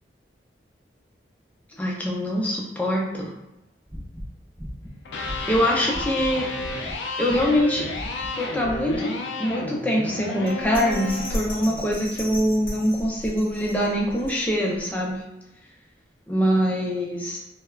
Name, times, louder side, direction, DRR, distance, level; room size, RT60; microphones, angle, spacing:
voice 1, 1.8-3.3 5.5-6.4 7.2-7.9 8.3-9.1 9.4-15.2 16.3-17.4, equal, 10° left, -3 dB, 0.4 m, -24 dB
sound 1, 3.9-6.3 6.6-7.0 7.2-7.7 7.9-8.3 8.6-9.0, equal, 10° right, 0.8 m, -37 dB
Electric guitar, 4.9-13.0, left 3 dB, 75° left, 0.4 m, -33 dB
Bell, 10.5-14.8 15.2-15.3, equal, 30° left, 0.8 m, -35 dB
3.2 x 2.1 x 2.3 m, 0.96 s
head